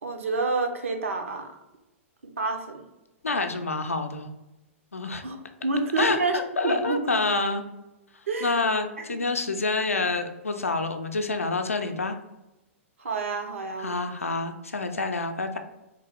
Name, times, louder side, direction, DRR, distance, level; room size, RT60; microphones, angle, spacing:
voice 1, 0.0-1.5 2.2-2.8 5.2-7.2 8.3-8.7 9.0-9.2 13.0-14.0, right 3 dB, 70° right, 4 dB, 0.6 m, -29 dB
voice 2, 3.2-4.3 4.9-5.2 6.0-7.6 8.4-12.2 13.8-15.6, left 3 dB, 85° left, 6 dB, 0.4 m, -27 dB
3.6 x 2.4 x 3.4 m, 0.96 s
figure-of-eight pair, 110°, 7 cm